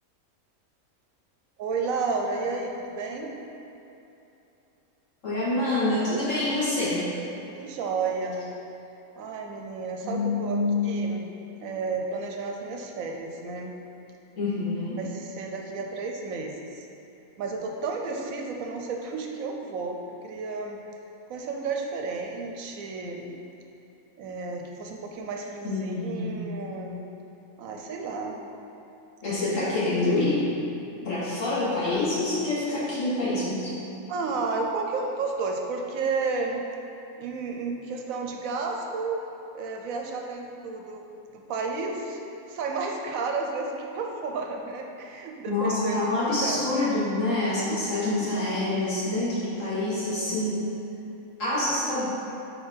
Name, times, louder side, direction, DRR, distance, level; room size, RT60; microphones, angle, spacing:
voice 1, 1.6-3.3 7.5-8.5 9.2-10.6 10.8-11.3 11.6-13.7 15.0-16.9 17.4-20.8 21.3-23.4 24.2-27.0 27.6-28.5 29.5-29.7 34.1-36.6 37.2-39.2 39.5-41.0 41.3-42.2 42.5-46.6 47.6-48.4 49.9-50.5 51.5-51.8, right 4 dB, 75° right, 2 dB, 1.0 m, -32 dB
voice 2, 5.2-7.1 10.0-10.9 14.4-15.0 25.6-26.4 29.2-30.5 31.0-33.7 45.5-50.7 51.4-52.1, left 2 dB, 60° left, -10 dB, 2.0 m, -26 dB
4.6 x 4.4 x 5.0 m, 2.9 s
omnidirectional pair, 1.5 m